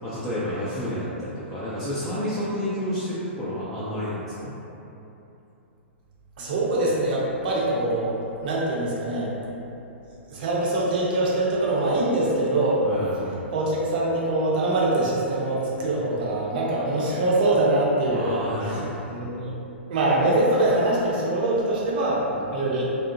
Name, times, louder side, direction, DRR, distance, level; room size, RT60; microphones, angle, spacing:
voice 1, 0.0-4.5 12.8-13.3 18.1-19.0 22.3-22.4, equal, 5° left, -13 dB, 0.4 m, -30 dB
voice 2, 6.4-9.3 10.3-12.8 13.5-18.7 19.0-19.5 19.9-22.2 22.5-22.9, right 2 dB, 45° right, -5 dB, 0.6 m, -23 dB
2.6 x 2.0 x 2.5 m, 2.9 s
figure-of-eight pair, 110°, 7 cm